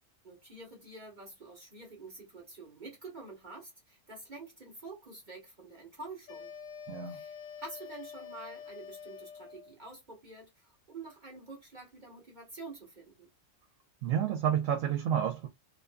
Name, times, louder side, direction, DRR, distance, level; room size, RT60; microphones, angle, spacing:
voice 1, 0.2-6.5 7.1-13.3, right 3 dB, 40° right, 1.2 m, -48 dB
sound 1, 6.3-9.8, left 7 dB, 70° left, 1.0 m, -46 dB
voice 2, 6.9-7.2 14.0-15.5, right 9 dB, 85° right, 1.0 m, -30 dB
2.6 x 2.5 x 2.2 m
omnidirectional pair, 1.3 m